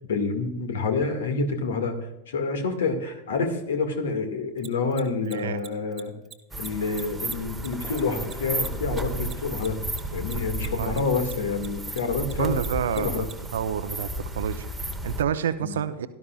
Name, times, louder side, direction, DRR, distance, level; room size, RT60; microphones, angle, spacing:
voice 1, 0.1-1.9 2.3-6.1 6.6-9.8 10.1-12.6 13.0-13.3 15.6-15.8, left 4 dB, 60° left, 6 dB, 2.0 m, -28 dB
Mechanisms, 4.6-11.3 11.6-13.3, right 10 dB, 25° right, 1.1 m, -43 dB
voice 2, 5.2-5.6 10.6-11.0 12.4-13.2 13.5-14.1 14.3-16.1, right 9 dB, 60° right, 11 dB, 0.8 m, -29 dB
sound 1, 6.5-15.2, right 1 dB, 5° right, 1.2 m, -33 dB
sound 2, 7.8-10.7, left 5 dB, 45° left, 1.5 m, -46 dB
17.0 x 12.5 x 2.4 m, 0.91 s
figure-of-eight pair, 90°, 0 cm